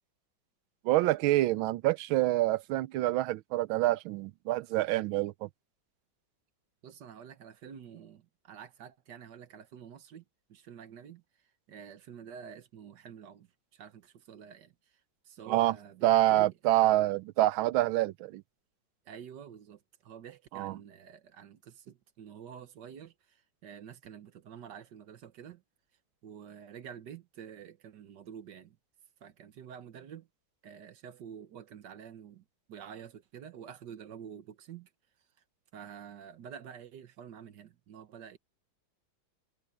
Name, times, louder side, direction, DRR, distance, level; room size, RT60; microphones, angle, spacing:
voice 1, 0.8-5.5 15.5-15.7 16.0-18.4 20.5-20.7, right 16 dB, 90° right, 1.4 m, -27 dB
voice 2, 6.8-10.2 10.5-16.8 19.0-25.6 26.2-28.8 29.2-30.3 30.6-34.9 35.7-38.4, right 8 dB, 60° right, 1.6 m, -48 dB
omnidirectional pair, 2.2 m